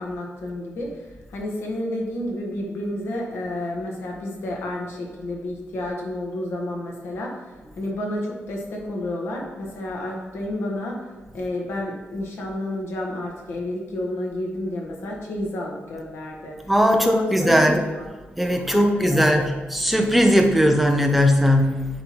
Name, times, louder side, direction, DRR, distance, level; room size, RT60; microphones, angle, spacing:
voice 1, 0.0-11.1 11.3-16.6 16.9-18.1 18.6-19.5, left 1 dB, 80° left, -1 dB, 1.5 m, -30 dB
voice 2, 16.7-17.8 18.4-21.9, equal, ahead, 3 dB, 0.6 m, -19 dB
9.9 x 3.9 x 3.2 m, 1.2 s
wide cardioid pair, 175°, 4 cm